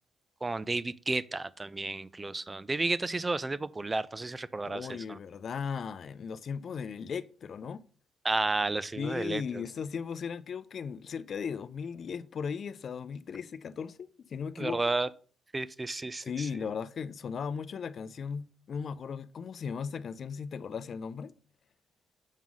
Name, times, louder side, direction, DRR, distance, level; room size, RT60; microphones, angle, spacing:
voice 1, 0.4-5.2 8.2-9.6 14.6-15.1 15.5-16.5, right 3 dB, 20° right, 0.5 m, -32 dB
voice 2, 4.6-7.8 9.0-14.8 16.2-21.3, left 6 dB, 50° left, 0.5 m, -37 dB
7.3 x 3.7 x 6.2 m
cardioid pair, 90°, 0 cm